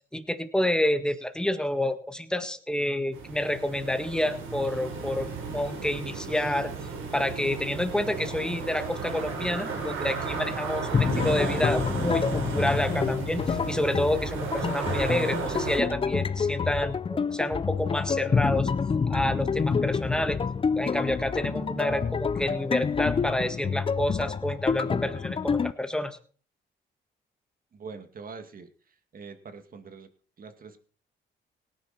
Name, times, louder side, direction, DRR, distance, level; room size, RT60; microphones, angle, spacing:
voice 1, 0.1-6.7 7.1-18.7 19.1-20.4 20.8-26.2, left 1 dB, 5° left, 8 dB, 1.7 m, -29 dB
sound 1, 3.1-15.8, right 4 dB, 90° right, 4.4 m, -34 dB
sound 2, 10.9-25.7, left 5 dB, 25° left, 0.5 m, -28 dB
voice 2, 27.7-28.7 29.1-30.1 30.4-30.8, right 5 dB, 45° right, 8 dB, 2.2 m, -43 dB
18.0 x 10.0 x 4.4 m, 0.43 s
cardioid pair, 90°, 20 cm